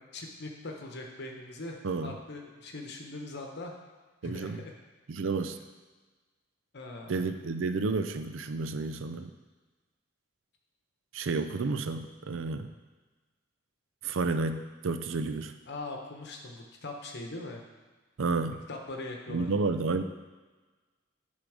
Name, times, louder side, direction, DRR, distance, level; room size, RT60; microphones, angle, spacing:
voice 1, 0.1-3.7 4.2-4.6 6.7-7.3 15.7-17.6 18.5-19.5, left 2 dB, 55° left, 2 dB, 1.0 m, -41 dB
voice 2, 1.8-2.2 4.2-4.6 5.1-5.6 7.1-9.3 11.1-12.7 14.0-15.6 18.2-18.6 19.3-20.0, right 3 dB, 65° right, 8 dB, 0.5 m, -31 dB
10.0 x 3.8 x 5.0 m, 1.3 s
head